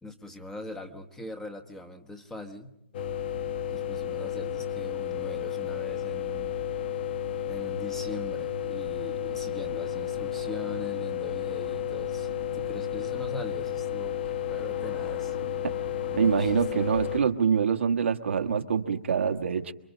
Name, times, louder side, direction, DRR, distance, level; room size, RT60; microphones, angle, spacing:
voice 1, 0.0-2.7 3.7-6.6 7.5-14.2 14.5-15.4 16.1-16.6, left 1 dB, 5° left, 6 dB, 1.2 m, -42 dB
sound 1, 2.9-17.2, left 9 dB, 55° left, 1.5 m, -32 dB
voice 2, 16.1-19.7, right 6 dB, 75° right, 5 dB, 1.4 m, -25 dB
28.0 x 23.5 x 5.3 m, 0.83 s
hypercardioid pair, 140°, 7 cm